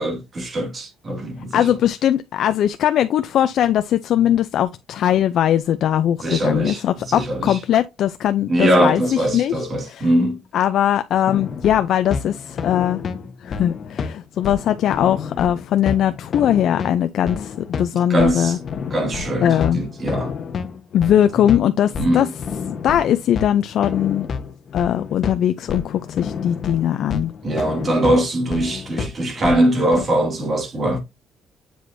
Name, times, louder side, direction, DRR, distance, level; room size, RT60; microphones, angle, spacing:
voice 1, 0.0-1.7 6.2-7.6 8.5-10.4 18.1-18.6 18.9-20.3 22.0-22.3 27.4-31.0, right 1 dB, 35° right, 2.0 m, -21 dB
voice 2, 1.5-10.1 10.5-13.0 13.4-18.6 19.4-19.8 20.9-22.3 22.7-24.3 24.7-27.3, left 10 dB, 70° left, 0.4 m, -20 dB
sound 1, 11.3-30.0, left 5 dB, 45° left, 1.1 m, -30 dB
7.8 x 4.9 x 2.6 m
cardioid pair, 120°, 0 cm